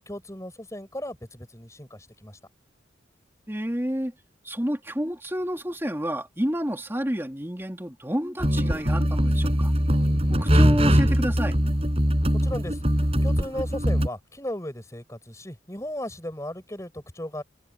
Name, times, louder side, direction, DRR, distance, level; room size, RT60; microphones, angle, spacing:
voice 1, 0.0-2.4 12.3-17.4, left 1 dB, 15° left, 5.0 m, -36 dB
voice 2, 3.5-4.1 4.4-9.7 10.3-11.6, equal, 10° right, 2.8 m, -29 dB
sound 1, 8.4-14.1, equal, 30° right, 7.3 m, -22 dB
head